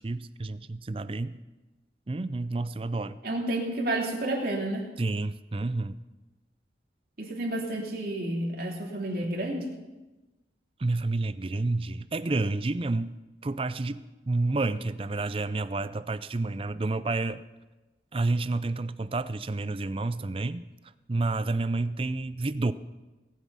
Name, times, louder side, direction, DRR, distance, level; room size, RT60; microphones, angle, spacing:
voice 1, 0.0-1.4 2.1-3.2 5.0-6.0 10.8-13.1 13.4-17.4 18.1-20.6 21.1-22.7, right 2 dB, 30° right, 14 dB, 0.4 m, -29 dB
voice 2, 3.2-4.9 7.2-9.7, right 1 dB, 55° right, -1 dB, 2.8 m, -30 dB
19.0 x 9.4 x 5.5 m, 1.1 s
head